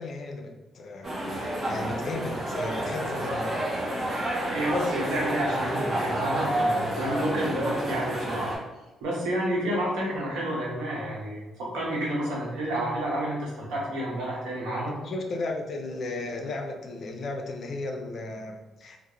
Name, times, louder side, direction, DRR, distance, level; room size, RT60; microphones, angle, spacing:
voice 1, 0.0-3.7 14.9-19.0, left 2 dB, 55° left, 3 dB, 0.4 m, -35 dB
sound 1, 1.0-8.6, right 1 dB, 35° right, 0.8 m, -29 dB
voice 2, 4.5-8.5 9.0-15.0, right 1 dB, 90° right, -4 dB, 0.9 m, -29 dB
2.4 x 2.0 x 2.9 m, 1.1 s
cardioid pair, 90°, 0 cm